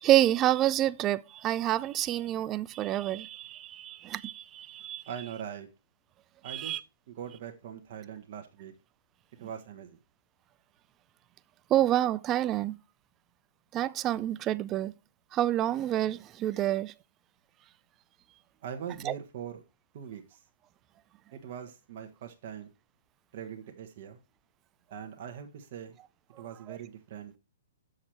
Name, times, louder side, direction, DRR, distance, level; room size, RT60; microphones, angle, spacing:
voice 1, 0.0-5.0 6.4-6.8 11.7-12.8 13.7-14.9 15.3-16.9 19.0-19.1 26.7-26.8, right 13 dB, 25° right, 0.4 m, -28 dB
voice 2, 5.1-5.7 6.4-6.8 7.1-8.7 9.4-10.0 18.6-19.6 19.9-20.2 21.3-22.7 23.3-24.2 24.9-26.0 26.4-27.3, right 8 dB, 50° right, 1.2 m, -41 dB
7.3 x 6.5 x 4.4 m
figure-of-eight pair, 115°, 0 cm